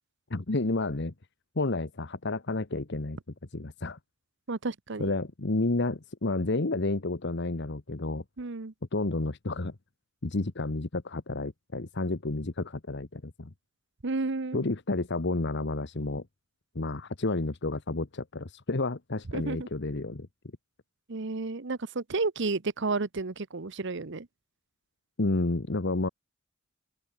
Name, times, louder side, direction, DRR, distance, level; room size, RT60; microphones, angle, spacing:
voice 1, 0.3-1.1 1.5-3.2 3.5-4.0 5.0-8.2 8.9-9.7 10.2-13.5 14.5-16.2 16.7-20.3 25.2-26.1, left 2 dB, 60° left, 1.2 m, -30 dB
voice 2, 4.5-5.1 8.4-8.7 14.0-14.6 19.3-19.7 21.1-24.3, right 3 dB, 60° right, 1.0 m, -31 dB
open air
head